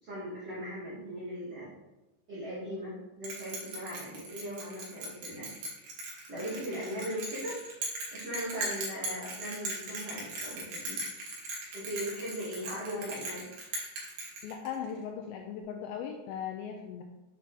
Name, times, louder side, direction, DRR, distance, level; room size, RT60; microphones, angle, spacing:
voice 1, 0.0-1.7 2.3-5.5 6.1-7.6 8.1-11.0 11.7-13.4, equal, 85° right, -8 dB, 1.3 m, -39 dB
Bell, 3.2-14.9, right 2 dB, 60° right, 2.5 m, -39 dB
voice 2, 12.9-13.2 14.4-17.0, left 8 dB, 85° left, 3 dB, 2.6 m, -38 dB
8.1 x 5.9 x 3.3 m, 1.0 s
omnidirectional pair, 5.8 m